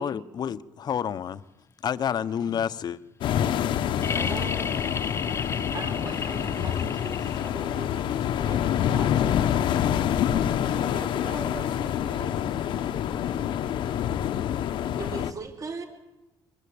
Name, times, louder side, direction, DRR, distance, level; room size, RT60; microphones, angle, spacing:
voice 1, 0.0-1.4 1.8-3.0, left 8 dB, 55° left, 1.2 m, -29 dB
voice 2, 2.1-2.5 4.1-4.8 5.7-9.8 10.6-10.9 15.0-15.9, right 4 dB, 45° right, 5.2 m, -41 dB
sound 1, 3.2-15.3, left 10 dB, 75° left, 1.4 m, -27 dB
sound 2, 4.0-7.8 9.5-9.6, left 5 dB, 30° left, 1.0 m, -33 dB
voice 3, 10.7-12.3, right 5 dB, 70° right, 5.4 m, -41 dB
24.5 x 24.0 x 8.8 m
cardioid pair, 90°, 8 cm